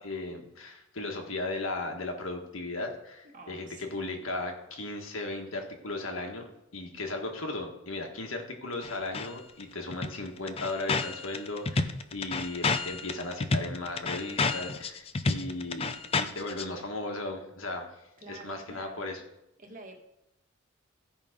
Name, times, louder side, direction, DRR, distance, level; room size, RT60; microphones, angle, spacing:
voice 1, 0.0-6.4 6.7-17.9 18.3-19.2, left 2 dB, 80° left, 3 dB, 1.6 m, -36 dB
voice 2, 3.2-4.3 18.2-19.1 19.6-20.0, right 2 dB, 40° right, 2 dB, 1.5 m, -48 dB
sound 1, 8.8-9.3 9.6-9.7 9.9-16.6, left 4 dB, 30° left, 0.5 m, -30 dB
15.0 x 5.3 x 5.1 m, 0.88 s
head